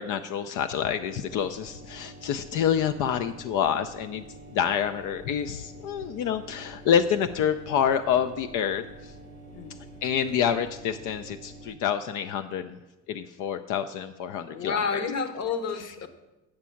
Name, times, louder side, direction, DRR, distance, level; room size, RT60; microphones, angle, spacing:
voice 1, 0.0-4.2 4.5-9.1 10.0-12.8 13.1-15.0, left 8 dB, 75° left, 9 dB, 0.5 m, -27 dB
sound 1, 1.1-11.8, right 2 dB, 25° left, 0.8 m, -47 dB
voice 2, 14.4-16.1, left 5 dB, 55° left, 10 dB, 1.0 m, -30 dB
8.7 x 6.2 x 5.7 m, 1.0 s
cardioid pair, 115°, 31 cm